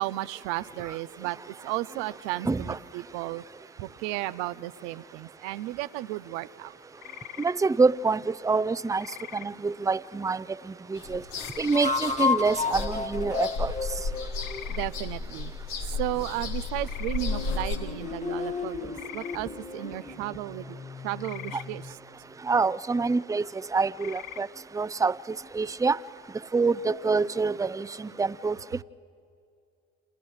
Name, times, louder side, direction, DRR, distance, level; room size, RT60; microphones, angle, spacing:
voice 1, 0.0-3.4 3.8-6.7 14.7-15.5 16.0-20.8 21.0-22.0, right 16 dB, 80° right, 0.5 m, -34 dB
voice 2, 2.4-2.8 7.4-9.1 9.3-11.2 11.6-13.7 21.5-21.6 22.4-24.5 24.7-26.0 26.5-28.6, right 4 dB, 10° right, 0.5 m, -26 dB
sound 1, 7.0-7.5 9.0-9.5 11.4-11.9 14.4-14.9 16.8-17.2 18.9-19.4 21.2-21.7 24.0-24.4, left 12 dB, 65° left, 0.8 m, -42 dB
sound 2, 9.4-9.6 11.7-15.1 17.1-21.9, left 4 dB, 20° left, 1.8 m, -33 dB
sound 3, 10.9-17.8, left 4 dB, 80° left, 2.0 m, -34 dB
29.5 x 29.0 x 3.2 m
hypercardioid pair, 45°, 34 cm